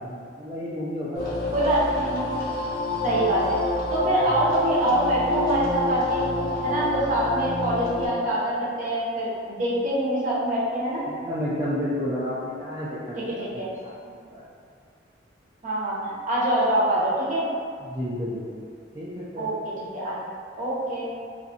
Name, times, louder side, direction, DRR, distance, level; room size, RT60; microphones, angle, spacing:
voice 1, 0.0-1.8 11.1-14.4 17.8-18.6 18.9-19.5, equal, 20° right, -10 dB, 0.3 m, -32 dB
sound 1, 1.1-8.1, left 2 dB, 50° left, 0.5 m, -28 dB
voice 2, 1.5-2.2 3.0-3.6 3.9-6.3 6.6-11.0 13.4-13.7 15.6-17.5 19.3-19.5 19.9-20.2 20.6-21.1, right 1 dB, 45° right, -8 dB, 0.6 m, -24 dB
2.5 x 2.3 x 2.6 m, 2.2 s
head